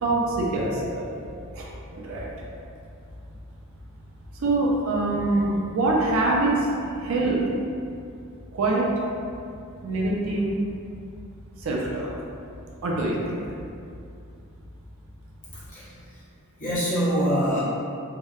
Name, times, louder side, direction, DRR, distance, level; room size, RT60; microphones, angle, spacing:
voice 1, 0.0-1.2 1.5-2.3 4.3-7.5 8.5-8.9 9.8-10.6 11.6-12.1 12.8-13.4, right 2 dB, 60° right, -3 dB, 0.4 m, -25 dB
voice 2, 15.4-16.2 16.6-17.6, equal, 35° left, -10 dB, 0.7 m, -26 dB
2.7 x 2.0 x 2.3 m, 2.5 s
head